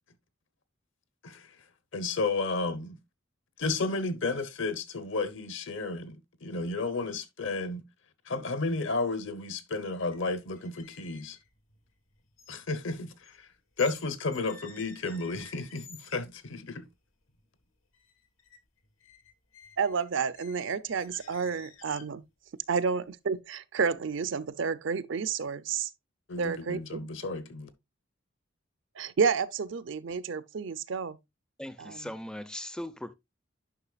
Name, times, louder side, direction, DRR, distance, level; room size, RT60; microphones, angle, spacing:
voice 1, 1.9-3.0 3.6-7.8 8.3-11.4 12.5-13.5 13.8-16.8 26.3-27.7, left 3 dB, 70° left, 1.0 m, -32 dB
sound 1, 10.0-10.2 10.5-14.0 14.3-16.3 16.8-16.9 17.3-17.7 17.9-18.6 18.8-22.3, left 6 dB, 90° left, 1.6 m, -52 dB
voice 2, 19.8-22.2 22.7-25.9 26.4-27.1 29.0-31.2 31.8-32.0, right 5 dB, 65° right, 0.5 m, -30 dB
voice 3, 31.6-33.1, left 1 dB, 5° left, 0.4 m, -39 dB
9.9 x 5.6 x 2.4 m
head